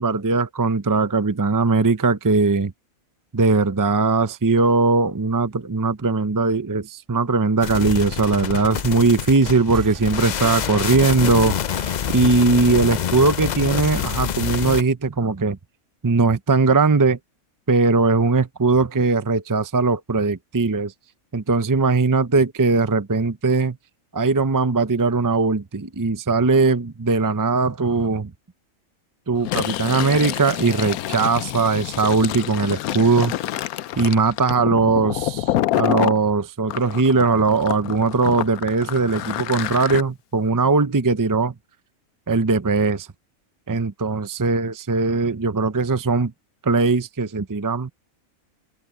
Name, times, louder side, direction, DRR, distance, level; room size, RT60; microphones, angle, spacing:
voice 1, 0.0-2.7 3.3-15.6 16.0-17.2 17.7-20.9 21.3-23.8 24.1-28.3 29.3-33.3 34.0-41.5 42.3-43.1 43.7-46.3 46.6-47.9, right 4 dB, 30° right, 0.3 m, -20 dB
sound 1, 7.6-14.8, left 8 dB, 70° left, 0.4 m, -26 dB
sound 2, 9.7-14.9, right 2 dB, 55° right, 2.9 m, -42 dB
Fill (with liquid), 29.4-36.2 36.7-40.0, left 13 dB, 85° left, 1.1 m, -27 dB
omnidirectional pair, 1.5 m